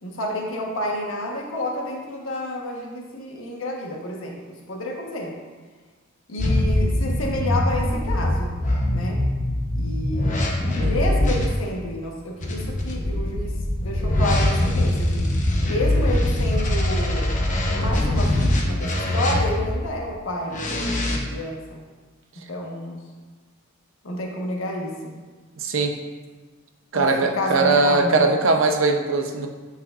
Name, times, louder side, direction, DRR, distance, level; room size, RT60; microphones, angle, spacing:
voice 1, 0.0-5.3 6.3-8.5 8.9-9.2 9.7-10.5 10.8-15.3 15.6-17.3 17.7-21.8 22.5-23.0 24.0-25.1 26.9-28.3, left 1 dB, 80° left, -1 dB, 1.3 m, -30 dB
sound 1, 6.4-11.5 12.4-19.8 20.5-21.2, left 1 dB, 40° left, 0.9 m, -22 dB
voice 2, 10.8-11.2 25.6-26.0 26.9-29.5, right 3 dB, 70° right, 4 dB, 0.7 m, -20 dB
8.5 x 5.7 x 2.5 m, 1.4 s
head